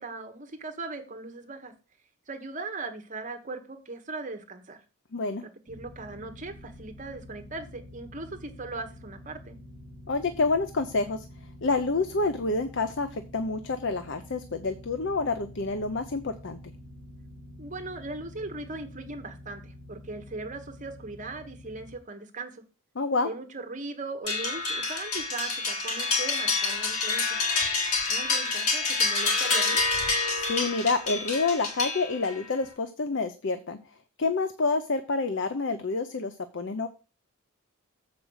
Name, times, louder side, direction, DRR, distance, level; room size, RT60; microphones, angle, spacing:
voice 1, 0.0-1.7 2.3-4.8 5.4-9.6 17.6-22.6 23.2-27.4 28.1-29.8, right 3 dB, 35° right, 5 dB, 1.3 m, -39 dB
voice 2, 5.1-5.4 10.1-11.2 11.6-16.6 23.0-23.3 30.4-33.8 34.2-36.9, left 3 dB, 55° left, 9 dB, 0.7 m, -28 dB
sound 1, 5.7-22.0, left 1 dB, 35° left, 3.3 m, -47 dB
sound 2, 24.3-32.4, left 3 dB, 85° left, 3.6 m, -27 dB
7.6 x 5.2 x 6.3 m, 0.33 s
head